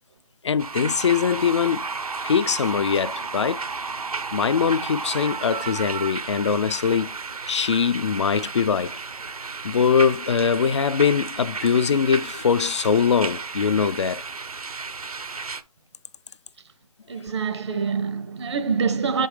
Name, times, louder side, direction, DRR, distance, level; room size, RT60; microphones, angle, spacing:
voice 1, 0.4-1.9 2.2-3.6 4.3-7.1 7.5-9.0 9.6-14.2, left 6 dB, 50° left, 0.5 m, -22 dB
sound 1, 0.6-15.6, right 4 dB, 75° right, 0.9 m, -33 dB
voice 2, 17.1-19.3, right 5 dB, 45° right, 0.8 m, -25 dB
7.5 x 5.3 x 3.1 m
figure-of-eight pair, 155°, 19 cm